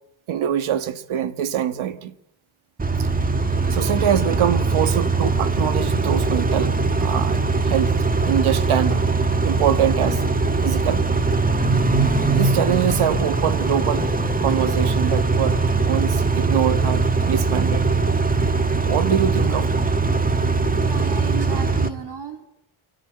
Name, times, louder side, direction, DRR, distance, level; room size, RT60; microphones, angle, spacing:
voice 1, 0.3-2.1 3.0-3.1 3.7-8.0 8.2-9.1 9.4-10.2 10.6-11.0 12.3-14.1 14.4-17.9 18.8-19.9 21.3-21.5, right 10 dB, 80° right, 1.8 m, -24 dB
Car / Idling / Accelerating revving vroom, 2.8-21.9, right 3 dB, 15° right, 1.7 m, -21 dB
voice 2, 20.8-22.5, right 6 dB, 55° right, 3.2 m, -34 dB
29.0 x 24.0 x 8.0 m
cardioid pair, 120°, 48 cm